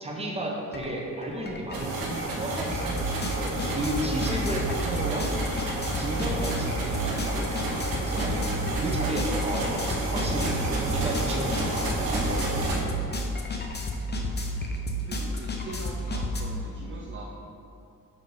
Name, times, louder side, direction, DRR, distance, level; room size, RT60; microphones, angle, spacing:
voice 1, 0.0-2.9 3.3-5.3 6.0-10.6 10.9-12.8, right 1 dB, 20° right, -1 dB, 1.0 m, -33 dB
sound 1, 0.7-0.9 1.2-16.4, equal, 30° left, 0.8 m, -31 dB
sound 2, 1.7-12.8, right 2 dB, 90° right, 1.2 m, -31 dB
voice 2, 15.0-17.3, right 2 dB, 35° right, -2 dB, 0.7 m, -42 dB
5.6 x 4.7 x 5.0 m, 2.7 s
cardioid pair, 90°, 34 cm